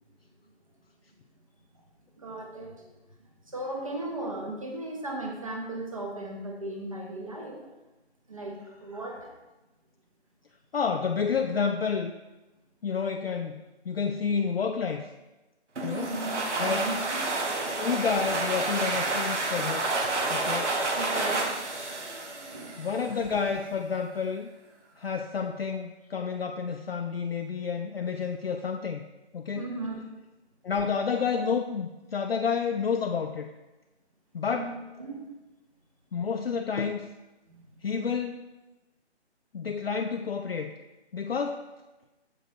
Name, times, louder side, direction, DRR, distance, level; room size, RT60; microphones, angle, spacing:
voice 1, 2.2-3.0 3.4-7.6 8.3-9.3 15.8-17.4 20.4-20.5 21.0-21.7 22.5-22.8 29.5-30.0 34.5-34.7 35.0-35.2 37.5-37.7, right 2 dB, 30° right, 0 dB, 0.9 m, -37 dB
voice 2, 10.7-12.1 12.8-15.1 15.8-16.1 16.6-16.9 17.8-20.0 20.3-20.8 22.8-24.5 25.0-29.0 29.3-29.7 30.6-33.5 34.3-34.7 36.1-37.1 37.8-38.5 39.5-40.7 41.1-41.6, left 6 dB, 60° left, 4 dB, 0.5 m, -30 dB
sound 1, 15.8-23.2, right 2 dB, 85° right, 1.3 m, -30 dB
7.7 x 5.2 x 3.0 m, 1.1 s
hypercardioid pair, 180°, 34 cm